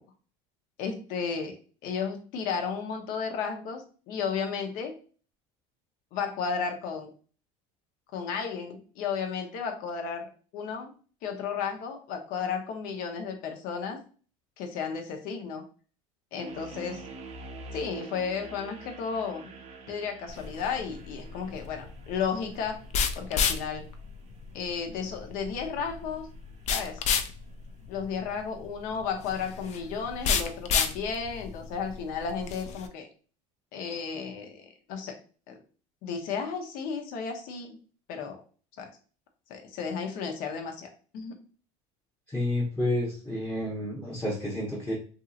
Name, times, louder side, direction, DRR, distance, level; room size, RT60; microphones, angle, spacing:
voice 1, 0.8-1.5 1.8-4.9 6.1-7.1 8.1-10.9 11.2-14.0 14.6-15.6 16.3-17.0 17.7-19.5 19.9-22.8 23.2-23.9 24.5-26.3 26.7-27.0 27.9-33.1 33.7-35.1 35.5-35.6 36.0-37.8 38.1-38.4 38.8-38.9 39.5-41.4, left 6 dB, 65° left, 4 dB, 0.8 m, -33 dB
sound 1, 16.4-27.4, right 3 dB, 40° right, 0.5 m, -48 dB
sound 2, 20.3-32.9, left 6 dB, 45° left, 0.4 m, -32 dB
voice 2, 42.3-44.9, left 1 dB, 10° left, -5 dB, 0.9 m, -30 dB
2.9 x 2.7 x 2.4 m, 0.39 s
supercardioid pair, 105°, 16 cm